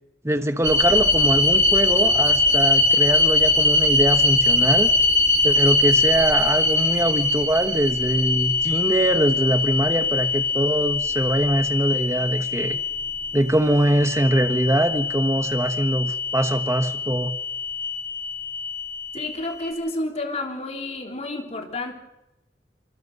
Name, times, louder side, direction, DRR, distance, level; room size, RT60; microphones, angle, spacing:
voice 1, 0.2-4.9 5.4-12.8 13.3-17.3, right 1 dB, 15° right, 7 dB, 1.2 m, -22 dB
sound 1, 0.6-19.7, left 2 dB, 70° right, 3.1 m, -22 dB
voice 2, 19.1-22.0, left 2 dB, 35° left, 3 dB, 3.3 m, -30 dB
27.0 x 22.0 x 5.4 m, 0.91 s
head